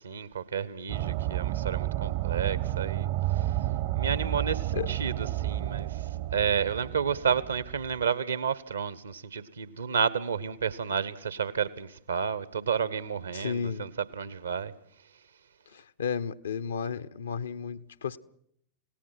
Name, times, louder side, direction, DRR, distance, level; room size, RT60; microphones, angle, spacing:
voice 1, 0.0-3.6 3.9-14.7, right 6 dB, 75° right, 1.2 m, -31 dB
sound 1, 0.9-8.0, right 15 dB, 50° right, 0.9 m, -31 dB
voice 2, 13.3-13.9 15.7-18.2, left 6 dB, 70° left, 0.9 m, -33 dB
28.0 x 18.5 x 5.9 m
figure-of-eight pair, 90°, 0 cm